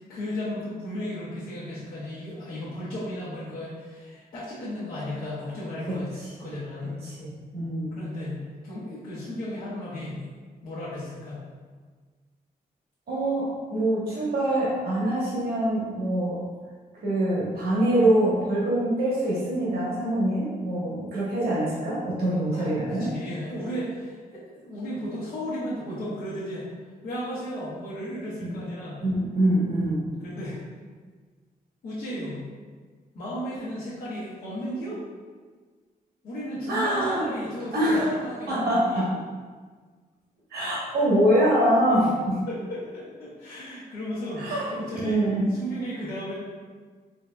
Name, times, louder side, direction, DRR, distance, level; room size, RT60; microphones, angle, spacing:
voice 1, 0.1-7.0 7.9-10.2 10.6-11.4 22.5-26.6 27.0-29.0 30.2-30.6 31.8-32.4 33.1-35.0 36.2-39.1 42.5-46.4, equal, 75° left, -12 dB, 1.1 m, -34 dB
voice 2, 7.0-8.0 13.1-16.4 17.0-23.1 28.4-28.5 29.0-30.0 36.7-37.2 37.7-38.1 38.5-39.1 40.5-42.4 44.4-44.7 45.0-45.4, right 1 dB, 85° right, -7 dB, 1.1 m, -24 dB
4.5 x 2.8 x 2.2 m, 1.5 s
wide cardioid pair, 140°, 16 cm